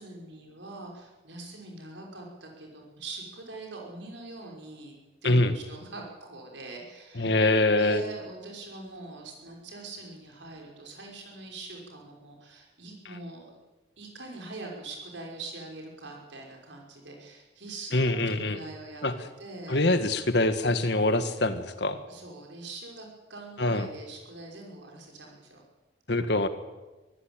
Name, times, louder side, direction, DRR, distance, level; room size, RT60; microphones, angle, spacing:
voice 1, 0.0-5.0 5.2-7.5 7.8-13.6 14.0-19.8 22.1-25.6, right 2 dB, 70° right, 0 dB, 5.9 m, -43 dB
voice 2, 7.2-8.0 17.9-18.6 19.0-19.1 19.7-22.0 23.6-23.9 26.1-26.5, left 2 dB, 60° left, 10 dB, 1.7 m, -24 dB
23.0 x 15.0 x 9.1 m, 1.1 s
head